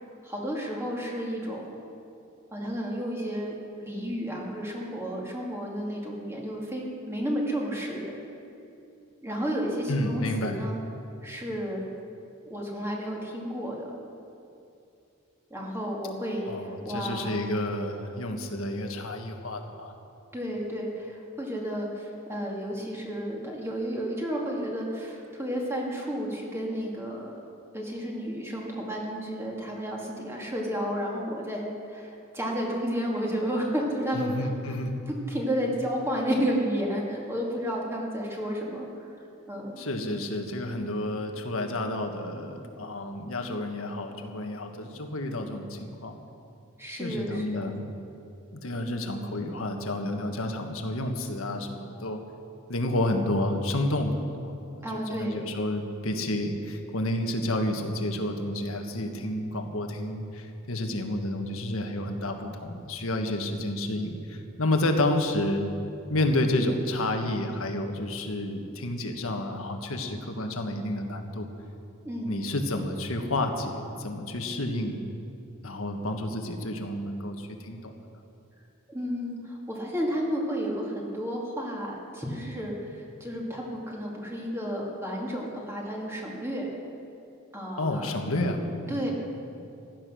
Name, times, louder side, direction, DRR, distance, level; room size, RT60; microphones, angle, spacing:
voice 1, 0.2-1.7 2.5-3.5 3.8-8.1 9.2-10.8 11.2-11.8 12.5-14.0 15.5-16.5 16.8-17.3 20.3-27.3 27.7-34.8 35.1-39.1 39.5-39.8 46.8-47.6 54.8-55.5 72.0-72.4 78.9-86.7 87.5-88.1 88.9-89.1, equal, 10° right, -2 dB, 2.3 m, -32 dB
voice 2, 9.9-10.6 16.4-19.9 34.1-34.9 39.8-46.2 47.0-47.9 48.5-52.2 52.7-54.6 54.9-65.7 66.1-71.5 72.2-75.0 75.6-77.9 87.8-89.0, left 1 dB, 80° left, 4 dB, 1.6 m, -30 dB
15.5 x 12.0 x 6.3 m, 2.7 s
head